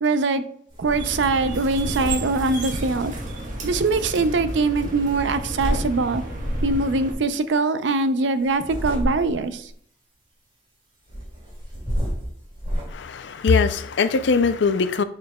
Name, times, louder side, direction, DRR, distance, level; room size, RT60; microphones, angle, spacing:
voice 1, 0.0-0.4 0.8-3.1 3.6-6.2 6.6-9.7, right 3 dB, 90° right, 0.5 m, -22 dB
sound 1, 0.7-1.0 1.3-3.8 5.0-5.9 6.4-6.8 8.4-9.5 11.1-12.9, equal, 30° right, 2.5 m, -30 dB
sound 2, 0.9-7.1, right 1 dB, 50° right, 1.3 m, -32 dB
voice 2, 12.9-15.0, left 4 dB, 80° left, 0.5 m, -21 dB
6.8 x 6.4 x 2.3 m
head